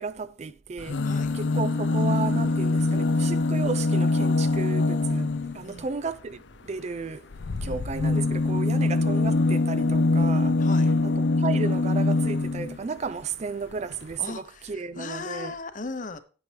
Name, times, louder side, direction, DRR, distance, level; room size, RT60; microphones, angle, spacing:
voice 1, 0.0-1.0 1.3-7.2 7.6-10.6 11.0-11.1 11.4-15.5, right 4 dB, 35° right, 0.4 m, -33 dB
sound 1, 0.8-5.6 7.3-12.8 13.7-13.8 14.0-14.1, left 2 dB, 70° left, 0.5 m, -23 dB
voice 2, 10.6-10.9 14.2-16.2, left 4 dB, 45° left, 0.8 m, -37 dB
10.5 x 8.3 x 3.4 m
head